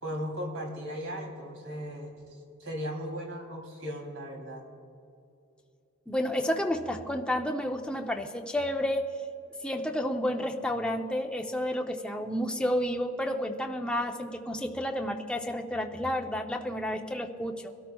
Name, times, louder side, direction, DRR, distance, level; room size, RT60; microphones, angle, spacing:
voice 1, 0.0-2.1 2.6-4.7, equal, 65° right, 0 dB, 2.9 m, -37 dB
voice 2, 6.1-9.0 9.6-17.6, left 1 dB, 5° left, 2 dB, 0.6 m, -31 dB
24.5 x 13.0 x 2.3 m, 2.5 s
head